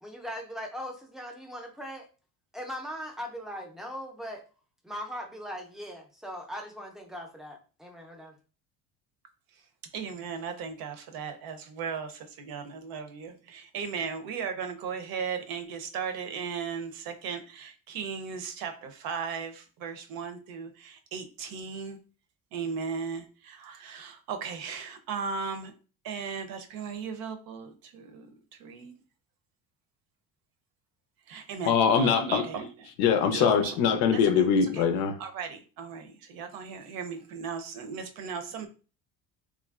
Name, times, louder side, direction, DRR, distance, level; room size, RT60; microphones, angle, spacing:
voice 1, 0.0-2.1 2.5-4.4 4.8-8.4, equal, ahead, 0.5 m, -39 dB
voice 2, 9.9-22.0 22.5-25.7 26.0-28.3 28.6-28.9 31.3-32.9 33.3-33.8 34.1-34.8 35.2-38.7, right 6 dB, 70° right, 0.6 m, -36 dB
voice 3, 31.7-32.5 33.0-35.2, left 7 dB, 90° left, 0.6 m, -23 dB
3.1 x 2.4 x 2.3 m
cardioid pair, 110°, 37 cm